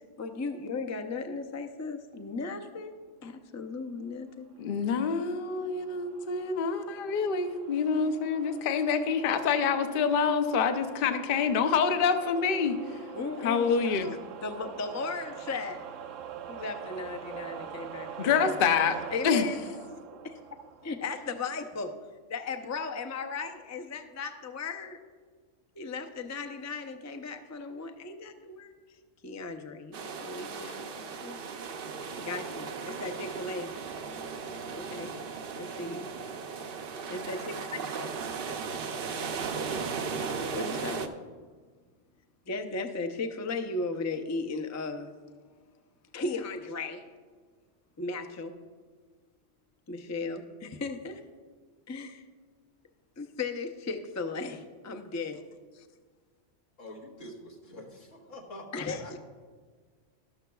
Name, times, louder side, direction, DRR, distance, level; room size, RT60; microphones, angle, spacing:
voice 1, 0.2-2.9 3.2-4.5 13.1-14.2 14.4-15.9 16.5-18.5 19.1-19.6 20.2-20.4 20.8-21.9 22.3-25.0 25.8-29.0 29.2-31.4 32.2-33.7 34.7-35.1 35.6-36.1 37.1-37.5 38.0-38.1 39.7-40.0 40.5-41.0 42.5-45.1 46.1-47.0 48.0-48.5 49.9-51.2 51.9-52.2 53.2-54.6 54.8-55.4 58.7-59.2, left 3 dB, 25° left, 6 dB, 0.4 m, -36 dB
voice 2, 4.6-13.1 13.4-14.1 18.2-19.0 19.2-19.4, left 6 dB, 55° left, 8 dB, 0.7 m, -27 dB
sound 1, 4.9-21.4, right 8 dB, 85° right, 1.0 m, -45 dB
sound 2, 29.9-41.1, right 5 dB, 55° right, 0.7 m, -36 dB
voice 3, 56.8-59.2, left 1 dB, 85° left, 0 dB, 1.9 m, -46 dB
12.5 x 12.5 x 2.3 m, 1.5 s
omnidirectional pair, 1.3 m